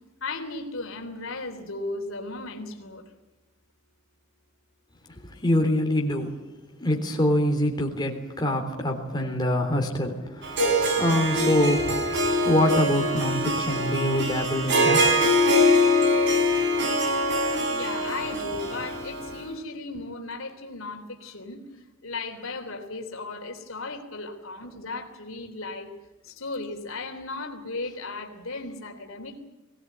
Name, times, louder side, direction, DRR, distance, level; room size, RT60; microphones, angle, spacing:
voice 1, 0.2-3.0 17.7-25.9 26.2-29.4, left 3 dB, 75° left, 4 dB, 3.4 m, -36 dB
voice 2, 5.1-6.4 6.8-12.0 12.4-15.2, left 1 dB, 20° left, 1 dB, 3.6 m, -25 dB
Harp, 10.4-19.4, left 1 dB, 60° right, 3.6 m, -23 dB
22.0 x 18.0 x 9.4 m, 1.1 s
head